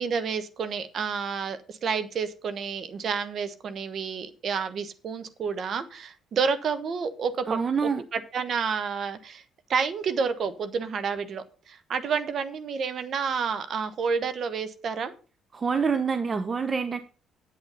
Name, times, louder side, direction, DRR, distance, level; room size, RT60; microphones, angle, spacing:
voice 1, 0.0-9.4 9.7-15.1, right 5 dB, 55° right, 11 dB, 1.1 m, -30 dB
voice 2, 7.5-8.0 15.5-17.0, right 5 dB, 35° right, 10 dB, 0.8 m, -26 dB
8.5 x 8.1 x 5.5 m, 0.37 s
hypercardioid pair, 50°, 0 cm